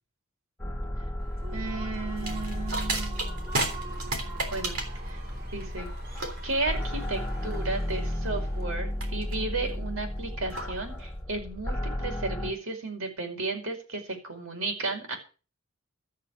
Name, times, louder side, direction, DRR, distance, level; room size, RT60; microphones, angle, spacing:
sound 1, 0.6-12.5, left 1 dB, 5° left, 2.4 m, -34 dB
Human voice / Cheering / Applause, 1.2-8.8, right 3 dB, 45° right, 3.2 m, -46 dB
voice 1, 1.5-3.3 4.5-5.2 5.5-5.9 6.2-15.2, right 3 dB, 70° right, 4 dB, 5.1 m, -34 dB
sound 2, 2.2-11.2, right 3 dB, 85° right, 3.5 m, -35 dB
13.5 x 7.5 x 8.2 m, 0.36 s
head